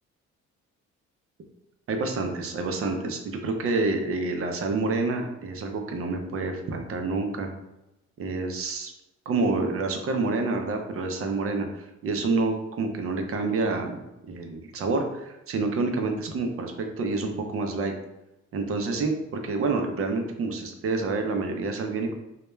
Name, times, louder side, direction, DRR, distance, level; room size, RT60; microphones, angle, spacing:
voice 1, 1.9-7.5 8.2-8.9 9.3-17.9 18.5-22.1, right 3 dB, 50° right, 4 dB, 0.5 m, -28 dB
2.2 x 2.2 x 3.0 m, 0.94 s
cardioid pair, 90°, 30 cm